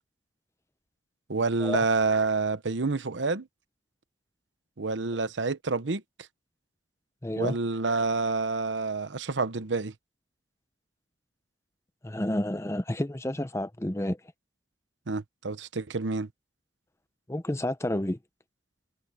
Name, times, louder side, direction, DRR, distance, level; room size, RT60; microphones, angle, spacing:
voice 1, 1.3-3.5 4.8-6.0 7.4-9.9 15.1-16.3, right 3 dB, 90° right, 0.9 m, -28 dB
voice 2, 7.2-7.6 12.0-14.2 17.3-18.2, left 1 dB, 15° left, 0.7 m, -30 dB
head